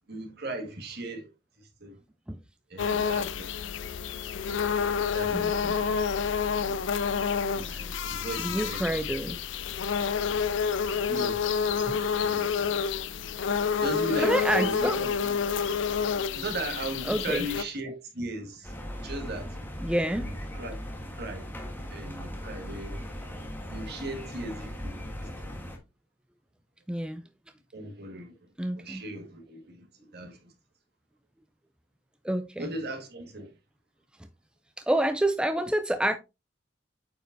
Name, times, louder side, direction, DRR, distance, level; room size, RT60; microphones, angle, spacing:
voice 1, 0.1-1.3 1.8-2.0 2.7-3.5 5.1-6.0 6.6-6.9 7.6-9.4 11.1-11.4 12.2-12.8 13.8-15.3 16.3-18.7 19.0-19.6 20.5-20.8 21.1-21.5 21.8-23.0 23.7-25.6 27.7-28.3 28.8-29.9 30.1-30.5 32.6-33.5, right 1 dB, 55° right, 1.8 m, -37 dB
sound 1, 2.8-17.6, left 6 dB, 70° left, 0.5 m, -29 dB
voice 2, 5.3-5.7 8.4-9.4 11.9-12.0 14.2-15.0 17.1-17.5 19.8-20.3 26.9-27.2 28.6-29.0 32.2-32.7 34.8-36.2, right 1 dB, 5° right, 0.4 m, -28 dB
sound 2, 18.6-25.8, equal, 10° left, 1.4 m, -38 dB
8.7 x 5.2 x 2.7 m
head